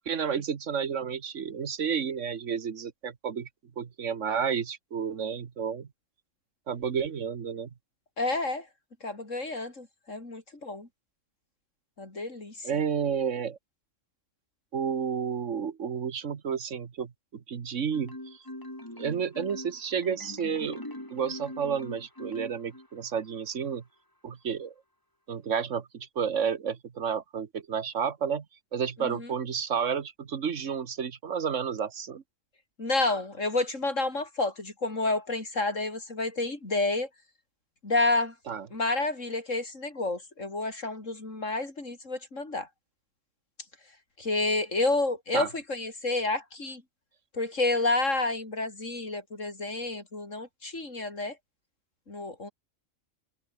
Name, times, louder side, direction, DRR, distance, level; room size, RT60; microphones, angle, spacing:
voice 1, 0.0-3.5 3.8-5.9 6.7-7.7 12.6-13.6 14.7-18.4 19.0-20.8 21.1-23.8 24.2-24.7 25.3-28.5 28.7-32.2 38.5-38.7 45.3-45.5, right 7 dB, 70° right, 1.6 m, -31 dB
voice 2, 8.2-8.7 9.0-10.9 12.0-12.8 29.0-29.3 32.8-37.1 37.8-38.3 38.7-42.7 44.2-46.8 47.3-51.4 52.1-52.5, left 2 dB, 75° left, 5.3 m, -30 dB
Marimba xylophone, 17.9-23.1, left 1 dB, 15° left, 3.5 m, -42 dB
omnidirectional pair, 1.3 m